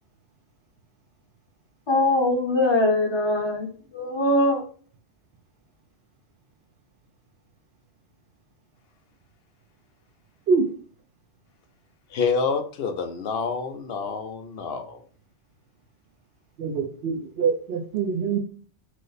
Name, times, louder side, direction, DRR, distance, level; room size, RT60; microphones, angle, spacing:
voice 1, 1.9-3.7 3.9-4.6, left 1 dB, 30° left, 0.7 m, -22 dB
voice 2, 12.1-15.0, left 5 dB, 65° left, 0.7 m, -27 dB
voice 3, 16.6-18.4, right 5 dB, 65° right, 0.8 m, -24 dB
3.0 x 2.1 x 3.9 m
omnidirectional pair, 1.2 m